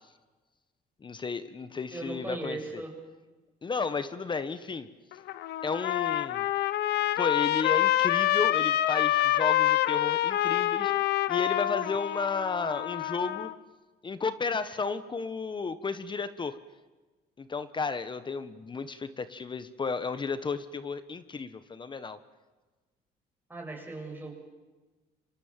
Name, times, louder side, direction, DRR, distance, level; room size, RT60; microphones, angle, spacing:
voice 1, 1.0-2.6 3.6-4.9 5.6-6.4 7.1-10.9 11.3-13.5 14.0-16.6 17.4-22.2, left 4 dB, 30° left, 13 dB, 1.3 m, -33 dB
voice 2, 1.9-2.9 23.5-24.4, right 2 dB, 10° right, 1 dB, 7.9 m, -38 dB
Trumpet, 5.1-13.5, left 14 dB, 75° left, 1.1 m, -27 dB
30.0 x 25.0 x 7.6 m, 1.2 s
cardioid pair, 110°, 17 cm